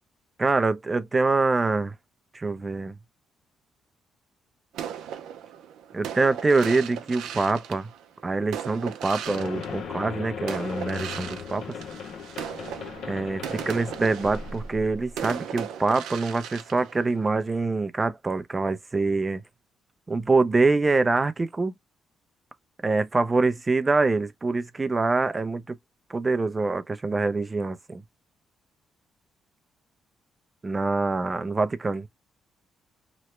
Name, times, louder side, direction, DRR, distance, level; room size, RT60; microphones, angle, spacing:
voice 1, 0.4-1.9 2.3-3.0 5.9-7.9 8.2-11.8 13.0-19.4 20.1-21.7 22.8-25.8 26.1-28.0 30.6-32.1, right 3 dB, 25° right, 0.5 m, -25 dB
sound 1, 4.7-10.1 10.5-17.6, right 9 dB, 85° right, 0.5 m, -37 dB
sound 2, 9.3-15.3, left 6 dB, 70° left, 0.7 m, -37 dB
3.0 x 2.0 x 3.1 m
cardioid pair, 90°, 0 cm